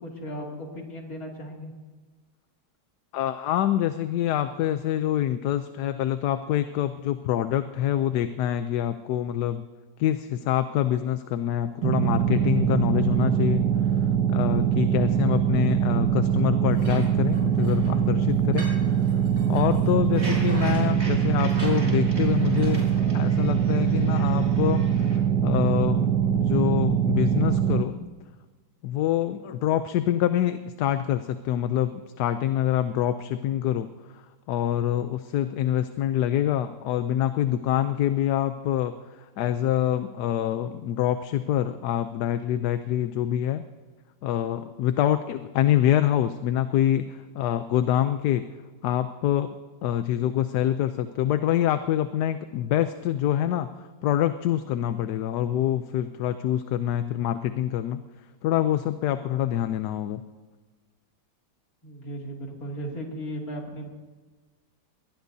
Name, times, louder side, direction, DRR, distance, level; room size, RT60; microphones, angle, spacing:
voice 1, 0.0-1.7 61.8-63.9, equal, 55° left, -1 dB, 3.1 m, -36 dB
voice 2, 3.1-9.7 10.0-13.6 14.3-19.0 19.5-24.8 25.4-28.0 28.8-33.9 34.1-34.2 34.5-43.6 44.2-48.5 48.8-49.5 49.8-58.0 58.4-60.2, left 11 dB, 75° left, 10 dB, 1.2 m, -26 dB
sound 1, 11.8-27.8, right 8 dB, 85° right, 1.5 m, -23 dB
sound 2, 16.7-22.9, right 1 dB, 65° right, 6.0 m, -41 dB
sound 3, 20.2-25.2, right 1 dB, 40° right, 3.1 m, -42 dB
22.0 x 18.5 x 2.7 m, 1.4 s
omnidirectional pair, 1.8 m